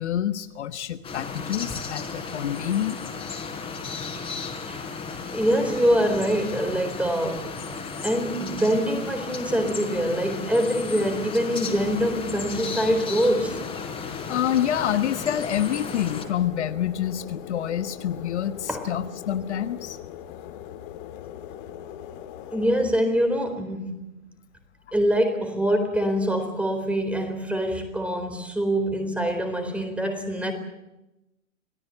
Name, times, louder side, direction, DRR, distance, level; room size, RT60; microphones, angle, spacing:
voice 1, 0.0-3.0 14.3-20.0, left 10 dB, 55° left, 1.4 m, -27 dB
sound 1, 1.0-16.2, left 5 dB, 15° left, 4.4 m, -35 dB
voice 2, 5.3-7.5 8.0-13.6 18.7-18.9 22.5-24.0 24.9-30.5, equal, 5° right, 4.1 m, -24 dB
sound 2, 11.7-22.9, left 10 dB, 40° left, 2.3 m, -41 dB
27.5 x 18.0 x 7.9 m
figure-of-eight pair, 120°, 39 cm